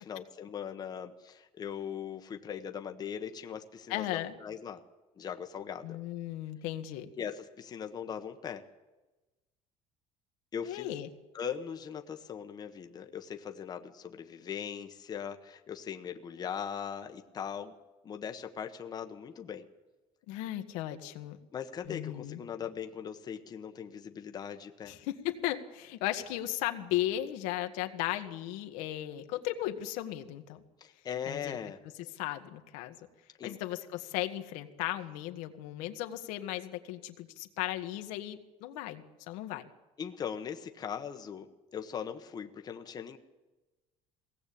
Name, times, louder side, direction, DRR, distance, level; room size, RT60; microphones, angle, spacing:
voice 1, 0.0-4.8 5.2-6.0 7.2-8.6 10.5-10.9 11.3-17.7 18.0-19.7 21.5-24.9 30.8-31.8 33.4-33.6 40.0-41.5 41.7-43.2, left 8 dB, 30° left, 6 dB, 1.4 m, -40 dB
voice 2, 3.9-4.4 5.8-7.1 10.6-11.1 20.3-21.4 21.8-22.4 24.9-30.6 31.3-31.6 32.1-33.0 33.4-39.7, left 14 dB, 85° left, 6 dB, 1.8 m, -36 dB
22.0 x 17.5 x 8.7 m, 1.1 s
cardioid pair, 140°, 13 cm